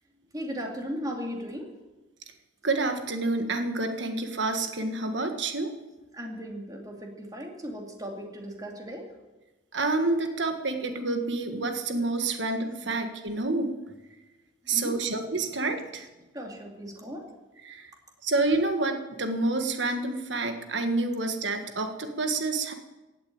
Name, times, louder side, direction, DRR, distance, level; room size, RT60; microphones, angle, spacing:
voice 1, 0.3-1.7 6.1-9.1 14.6-15.0 16.3-17.3, equal, 20° right, 1 dB, 2.6 m, -37 dB
voice 2, 2.6-5.7 9.7-13.7 14.7-16.1 17.6-17.9 18.2-22.7, right 3 dB, 65° right, 6 dB, 1.7 m, -28 dB
16.0 x 8.6 x 8.8 m, 1.1 s
head